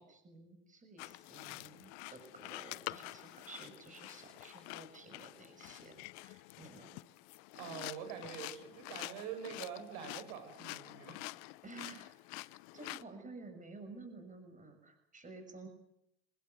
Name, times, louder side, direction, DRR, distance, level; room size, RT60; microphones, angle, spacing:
voice 1, 0.0-6.9 11.6-15.7, right 3 dB, 20° right, 7 dB, 6.4 m, -53 dB
sound 1, 1.0-13.0, left 23 dB, 75° left, 0.9 m, -48 dB
voice 2, 7.6-11.2 12.8-12.9, right 8 dB, 80° right, 7 dB, 6.9 m, -45 dB
24.5 x 20.5 x 9.5 m, 0.78 s
supercardioid pair, 120°, 36 cm